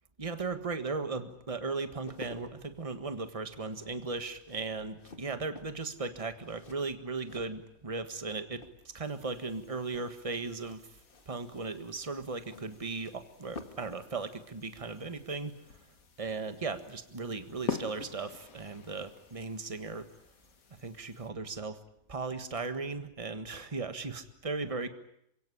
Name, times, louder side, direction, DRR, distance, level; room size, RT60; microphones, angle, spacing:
voice 1, 0.2-10.8 11.3-15.8 16.2-20.1 20.8-21.8 22.1-24.9, right 4 dB, 25° right, 9 dB, 1.6 m, -37 dB
sound 1, 1.8-8.2 8.5-9.2 10.5-14.0 14.2-14.4, left 3 dB, 40° left, 2.0 m, -52 dB
sound 2, 9.0-21.3, left 6 dB, 80° left, 2.0 m, -47 dB
27.5 x 17.0 x 9.9 m, 0.75 s
omnidirectional pair, 1.4 m